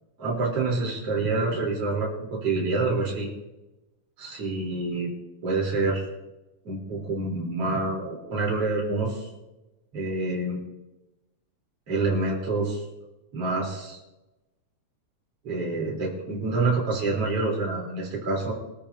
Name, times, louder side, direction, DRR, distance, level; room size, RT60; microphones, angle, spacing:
voice 1, 0.2-3.3 4.2-5.1 5.4-6.0 6.6-9.3 9.9-10.6 11.9-12.8 13.3-14.0 15.4-18.5, right 3 dB, 50° right, -5 dB, 5.1 m, -27 dB
24.0 x 13.5 x 2.9 m, 1.0 s
omnidirectional pair, 3.6 m